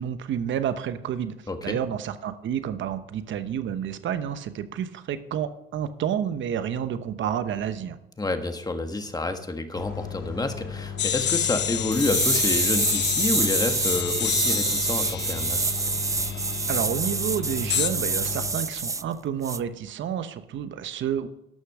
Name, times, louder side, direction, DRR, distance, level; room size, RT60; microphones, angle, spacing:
voice 1, 0.0-1.3 1.6-8.0 16.7-21.3, right 9 dB, 70° right, 11 dB, 1.0 m, -30 dB
voice 2, 1.5-1.8 8.2-15.6, left 2 dB, 20° left, 6 dB, 1.5 m, -29 dB
sound 1, 9.7-18.5, left 7 dB, 90° left, 2.7 m, -36 dB
sound 2, 11.0-16.7 17.7-17.9, left 9 dB, 60° left, 0.9 m, -28 dB
sound 3, 11.9-19.0 19.4-19.6, right 4 dB, 15° right, 0.4 m, -27 dB
12.0 x 6.5 x 4.9 m, 0.86 s
cardioid pair, 90°, 20 cm